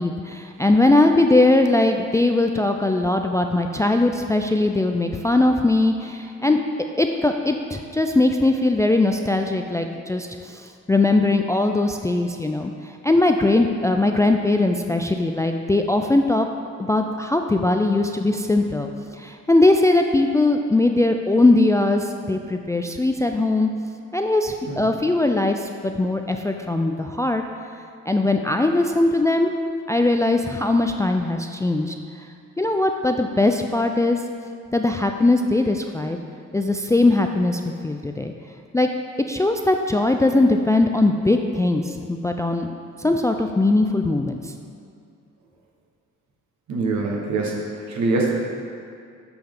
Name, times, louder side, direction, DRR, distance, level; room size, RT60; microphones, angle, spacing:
voice 1, 0.0-6.6 7.0-16.5 16.9-23.7 24.1-27.4 28.1-29.5 29.9-31.9 32.6-34.2 34.7-36.2 36.5-38.3 38.7-38.9 39.3-42.7 43.0-44.5, left 2 dB, 10° left, 4 dB, 0.3 m, -20 dB
voice 2, 46.7-48.3, right 3 dB, 70° right, -1 dB, 1.4 m, -24 dB
8.7 x 5.3 x 3.8 m, 2.4 s
cardioid pair, 90°, 30 cm